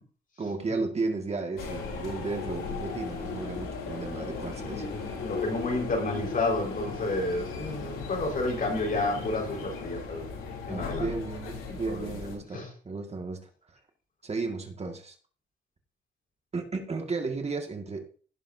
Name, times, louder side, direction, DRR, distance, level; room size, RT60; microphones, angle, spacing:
voice 1, 0.4-4.9 10.7-13.5 14.2-15.2 16.5-18.2, right 3 dB, 30° right, 4 dB, 1.9 m, -34 dB
sound 1, 1.6-12.4, left 4 dB, 85° left, 3.5 m, -37 dB
voice 2, 4.6-10.2 10.7-11.1 11.7-12.2 12.5-12.7, left 2 dB, 45° left, 1 dB, 5.0 m, -31 dB
17.0 x 7.2 x 2.7 m, 0.42 s
cardioid pair, 90°, 20 cm